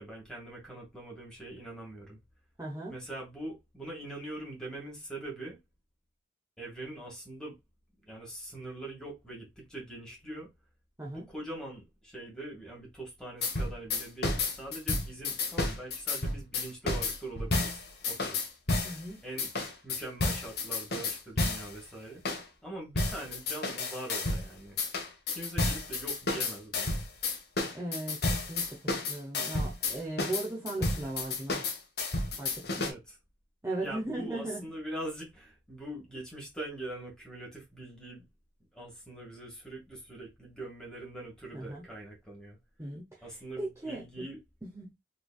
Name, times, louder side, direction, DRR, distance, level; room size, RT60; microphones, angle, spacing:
voice 1, 0.0-2.2 2.9-5.6 6.6-7.6 8.0-10.5 11.0-18.4 19.2-19.5 19.8-22.2 22.6-24.8 25.4-27.0 32.8-33.2 33.8-38.3 38.7-42.6 43.2-44.4, right 1 dB, 5° left, 1.8 m, -43 dB
voice 2, 2.6-3.0 11.0-11.2 18.8-19.2 27.7-28.8 29.1-31.7 32.4-32.9 33.6-34.6 41.5-41.8 42.8-43.3 43.6-44.2 44.6-44.9, right 2 dB, 15° right, 0.7 m, -37 dB
sound 1, 13.4-19.0 19.4-21.7 22.3-22.4 23.0-24.5 24.8-32.9, left 2 dB, 55° left, 1.1 m, -31 dB
4.0 x 3.3 x 2.3 m
head